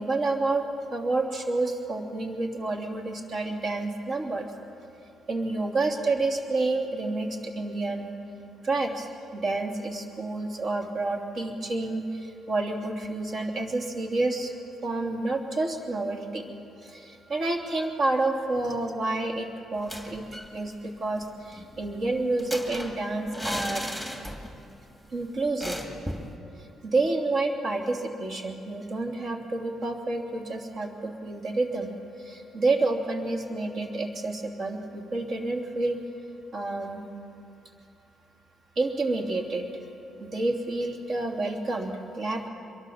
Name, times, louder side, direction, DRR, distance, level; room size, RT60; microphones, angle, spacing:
voice 1, 0.0-4.5 5.3-8.1 8.6-14.5 14.8-16.5 16.8-23.9 25.1-25.8 26.8-31.9 32.2-36.0 36.5-37.0 38.8-39.7 40.2-42.5, right 2 dB, 50° right, 2 dB, 2.9 m, -29 dB
sound 1, 19.7-20.6 20.8-20.9 21.2-24.7 25.0-25.1 25.6-26.3, equal, 10° right, 2.4 m, -36 dB
24.5 x 22.5 x 7.2 m, 2.6 s
cardioid pair, 140°, 0 cm